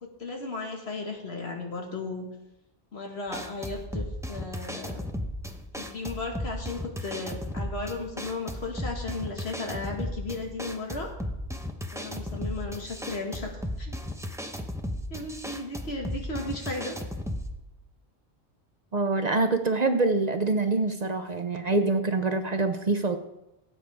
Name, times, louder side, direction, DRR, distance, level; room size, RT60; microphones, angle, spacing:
voice 1, 0.0-2.2 2.9-5.0 5.8-11.1 11.9-13.5 13.8-14.0 15.1-17.0, left 3 dB, 70° left, 1 dB, 2.0 m, -35 dB
sound 1, 3.3-17.6, equal, 5° right, 0.6 m, -35 dB
voice 2, 18.9-23.2, right 3 dB, 45° right, 7 dB, 0.7 m, -25 dB
17.5 x 8.4 x 3.5 m, 0.91 s
omnidirectional pair, 1.1 m